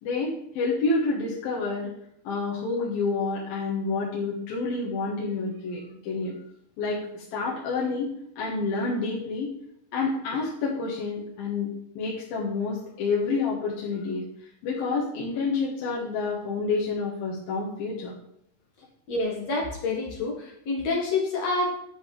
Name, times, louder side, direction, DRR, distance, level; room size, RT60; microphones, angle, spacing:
voice 1, 0.0-1.9 2.2-6.3 6.8-8.1 8.4-9.5 9.9-11.7 12.0-14.2 14.6-18.1, left 4 dB, 70° left, -5 dB, 3.2 m, -28 dB
voice 2, 19.1-21.7, left 3 dB, 50° left, -1 dB, 2.3 m, -27 dB
10.5 x 8.1 x 3.3 m, 0.73 s
omnidirectional pair, 4.4 m